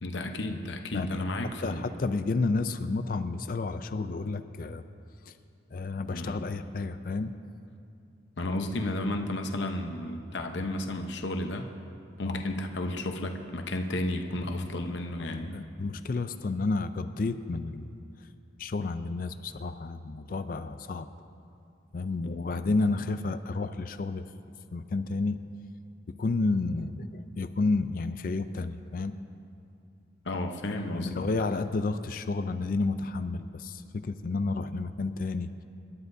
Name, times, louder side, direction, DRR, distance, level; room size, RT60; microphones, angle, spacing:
voice 1, 0.0-1.9 6.1-6.4 8.4-11.7 12.2-15.6 30.2-31.2, left 1 dB, 70° left, 4 dB, 0.9 m, -32 dB
voice 2, 1.6-4.8 5.3-5.4 5.7-7.3 12.3-12.4 15.3-17.9 18.6-21.1 21.9-24.2 24.7-25.4 26.2-29.1 30.9-35.5, left 3 dB, 45° left, 10 dB, 0.4 m, -31 dB
27.0 x 11.5 x 2.7 m, 2.5 s
head